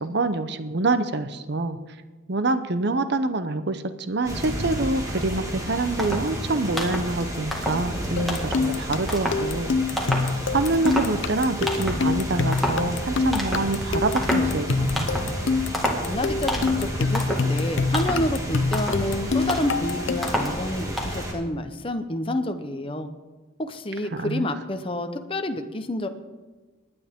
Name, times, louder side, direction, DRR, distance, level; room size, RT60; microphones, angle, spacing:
voice 1, 0.0-1.8 2.3-9.7 10.5-15.1 24.1-24.5, right 2 dB, 55° right, 11 dB, 0.7 m, -26 dB
sound 1, 4.3-21.3, right 1 dB, 15° right, 2.0 m, -32 dB
sound 2, 5.6-5.7 6.0-6.4 6.7-7.1 7.5-7.9 8.3-8.7 9.1-9.5 10.0-10.4 10.7-11.4 11.7-12.1 12.5-12.9 13.3-13.8 14.2-14.6 15.0-15.4 15.7-16.1 16.5-16.9 17.1-17.5 17.9-18.3 18.7-19.1 19.5-19.8 20.2-20.6 21.0-21.2, equal, ahead, 1.9 m, -29 dB
sound 3, 8.2-20.5, left 4 dB, 60° left, 0.6 m, -26 dB
voice 2, 16.0-23.1 23.6-26.1, left 1 dB, 25° left, 7 dB, 0.8 m, -29 dB
20.0 x 9.7 x 3.6 m, 1.3 s
head